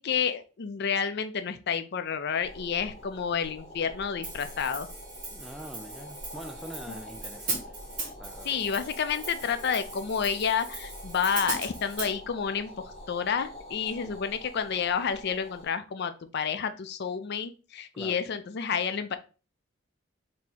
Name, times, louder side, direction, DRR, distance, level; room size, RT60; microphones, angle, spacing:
voice 1, 0.0-4.9 8.4-19.2, left 7 dB, 55° left, 0.5 m, -30 dB
sound 1, 2.4-15.7, left 1 dB, 30° left, 1.1 m, -46 dB
Hi-hat, 4.2-12.1, right 3 dB, 45° right, 1.4 m, -39 dB
voice 2, 5.3-7.8 8.2-8.6 14.0-14.2 17.9-18.2, right 1 dB, ahead, 0.3 m, -44 dB
3.5 x 2.8 x 4.1 m
head